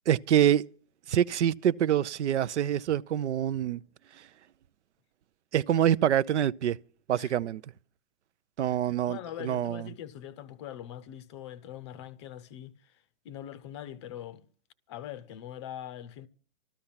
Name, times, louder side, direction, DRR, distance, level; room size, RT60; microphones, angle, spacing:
voice 1, 0.1-0.6 1.1-3.8 5.5-6.8 7.1-7.6 8.6-9.9, right 10 dB, 75° right, 0.7 m, -26 dB
voice 2, 8.7-14.4 14.9-16.3, left 11 dB, 25° left, 0.6 m, -43 dB
13.5 x 13.0 x 5.7 m
hypercardioid pair, 155°, 35 cm